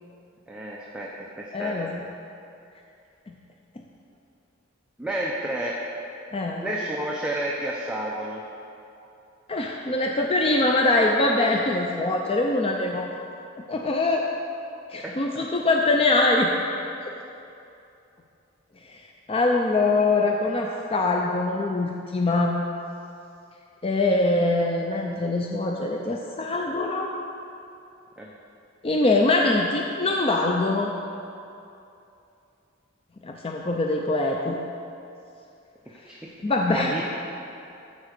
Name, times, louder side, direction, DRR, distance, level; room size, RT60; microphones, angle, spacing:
voice 1, 0.5-1.1 1.6-2.0 5.0-5.8 6.6-8.4 14.9-15.4 28.2-28.3 36.0-36.2 36.7-37.1, right 1 dB, 5° right, -4 dB, 0.8 m, -30 dB
voice 2, 1.5-2.0 3.3-3.4 6.3-6.7 9.5-13.1 13.7-14.3 14.9-16.5 17.0-17.1 18.9-19.0 19.3-22.6 23.8-27.1 28.8-30.9 33.2-34.6 36.4-36.9, left 2 dB, 30° left, 1 dB, 0.5 m, -23 dB
13.5 x 4.8 x 6.5 m, 2.7 s
head